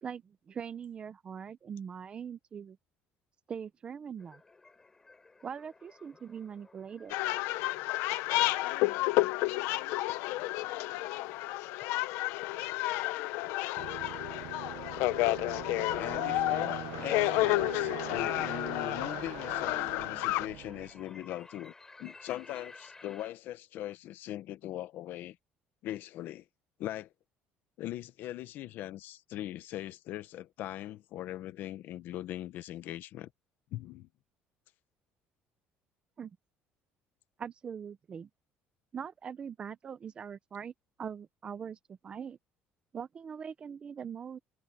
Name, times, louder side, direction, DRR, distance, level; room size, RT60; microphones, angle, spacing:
voice 1, 0.0-2.8 3.5-4.4 5.4-7.2 36.2-36.4 37.4-38.3 38.9-40.7 41.0-42.4 42.9-44.4, right 7 dB, 25° right, 0.7 m, -42 dB
sound 1, 4.2-23.3, left 3 dB, 15° left, 4.4 m, -58 dB
sound 2, 7.1-20.5, left 19 dB, 90° left, 0.9 m, -31 dB
Aircraft, 13.8-21.1, right 18 dB, 80° right, 0.8 m, -43 dB
voice 2, 16.0-21.7 22.0-25.4 25.8-26.4 26.8-27.1 27.8-33.3 33.7-34.1, left 14 dB, 55° left, 1.1 m, -40 dB
cardioid pair, 175°, 4 cm